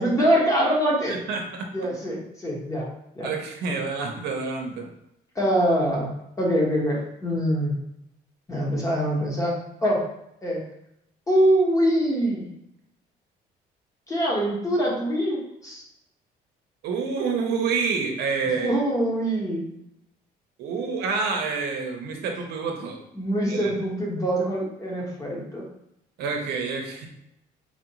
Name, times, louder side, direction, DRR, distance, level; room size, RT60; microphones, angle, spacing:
voice 1, 0.0-1.2 1.7-2.9 3.1-3.3 5.3-6.1 6.4-7.7 8.5-10.0 10.4-10.6 11.3-12.5 14.1-15.8 18.6-19.7 23.1-25.6, equal, 20° left, -3 dB, 1.1 m, -24 dB
voice 2, 1.1-1.9 3.2-4.9 16.8-18.7 20.6-23.0 23.5-23.7 26.2-27.1, right 5 dB, 75° right, 2 dB, 0.7 m, -28 dB
4.2 x 2.5 x 2.9 m, 0.80 s
cardioid pair, 110°, 17 cm